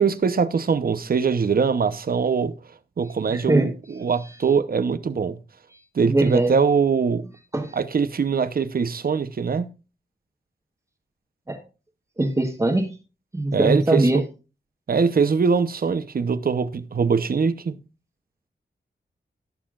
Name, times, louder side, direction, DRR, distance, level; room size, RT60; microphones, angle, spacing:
voice 1, 0.0-2.5 3.0-5.4 5.9-7.3 7.7-9.7 13.5-14.2 14.9-17.8, right 5 dB, 55° right, 0.9 m, -22 dB
voice 2, 3.3-3.7 6.0-6.6 7.5-7.7 11.5-11.6 12.2-12.9 13.3-14.2, right 2 dB, 20° right, 1.3 m, -21 dB
18.0 x 6.7 x 2.5 m
wide cardioid pair, 120°, 18 cm